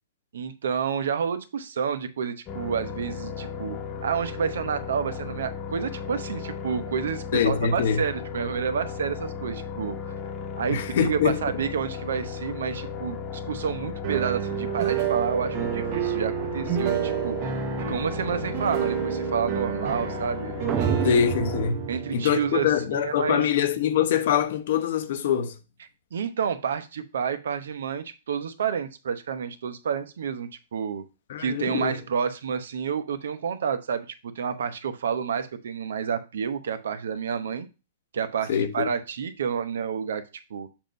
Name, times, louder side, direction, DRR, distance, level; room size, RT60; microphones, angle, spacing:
voice 1, 0.3-10.0 10.6-13.2 13.4-17.4 17.9-21.1 21.9-22.7 22.9-23.4 26.1-31.0 31.4-34.1 34.3-37.7 38.1-40.2 40.5-40.7, right 7 dB, 75° right, 0.8 m, -29 dB
sound 1, 2.5-21.7, left 6 dB, 25° left, 1.0 m, -35 dB
voice 2, 7.3-8.0 10.7-11.4 21.0-25.6 31.3-32.0 38.5-38.9, left 8 dB, 60° left, 0.9 m, -24 dB
sound 2, 14.0-24.0, right 11 dB, 40° right, 0.9 m, -30 dB
sound 3, 20.7-22.8, right 6 dB, 20° right, 0.4 m, -31 dB
7.3 x 2.7 x 5.1 m
hypercardioid pair, 145°, 0 cm